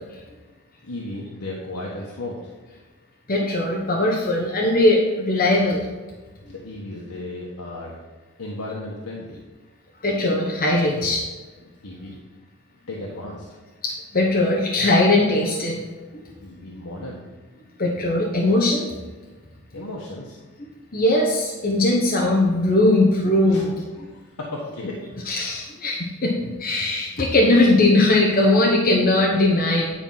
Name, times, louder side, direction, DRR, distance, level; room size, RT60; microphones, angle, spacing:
voice 1, 0.8-2.4 6.5-8.0 8.4-9.4 11.8-12.2 12.9-13.4 16.4-17.2 19.7-20.4 23.5-23.6 24.0-24.1 24.4-25.0, left 2 dB, 90° left, -3 dB, 1.3 m, -34 dB
voice 2, 3.3-5.9 10.0-11.3 13.8-15.9 16.1-16.3 17.8-18.9 20.9-23.7 25.3-29.9, left 2 dB, 40° left, -2 dB, 1.1 m, -19 dB
10.0 x 4.6 x 5.6 m, 1.3 s
head